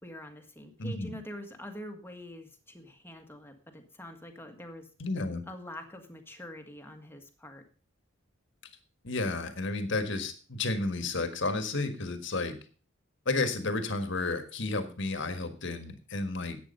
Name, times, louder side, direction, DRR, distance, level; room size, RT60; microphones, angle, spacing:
voice 1, 0.0-4.9 5.5-7.6, left 1 dB, 10° left, 5 dB, 1.6 m, -45 dB
voice 2, 0.8-1.1 5.0-5.4 9.0-12.5 13.2-16.6, left 3 dB, 65° left, 8 dB, 1.6 m, -32 dB
11.5 x 8.7 x 5.4 m, 0.39 s
head